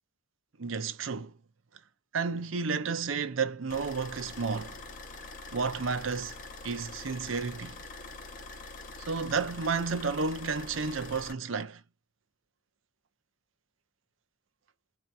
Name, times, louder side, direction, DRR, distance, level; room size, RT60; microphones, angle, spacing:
voice 1, 0.6-1.3 2.1-4.8 5.5-6.4 6.6-7.8 9.1-11.8, right 5 dB, 70° right, 0.6 m, -31 dB
sound 1, 3.7-11.3, left 3 dB, 40° left, 0.8 m, -45 dB
4.4 x 2.8 x 2.3 m
head